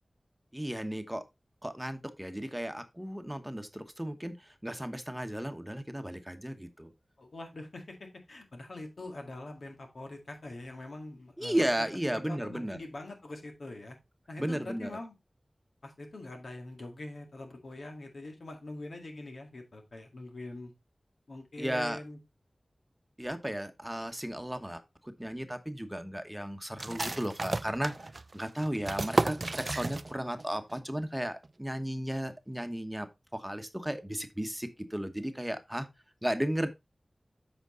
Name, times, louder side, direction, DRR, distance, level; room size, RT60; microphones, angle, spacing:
voice 1, 0.5-1.2 1.6-6.9 11.4-12.8 14.4-14.9 21.6-22.0 23.2-27.9 28.3-33.1 33.3-35.9 36.2-36.7, right 1 dB, 10° right, 1.0 m, -34 dB
voice 2, 7.2-11.7 12.3-14.0 14.3-15.1 15.8-20.7 21.3-22.2, left 2 dB, 80° left, 2.0 m, -43 dB
sound 1, 26.8-30.4 30.7-30.8 31.2-31.7, right 2 dB, 45° right, 0.4 m, -33 dB
8.1 x 5.2 x 3.7 m
wide cardioid pair, 55°, 0 cm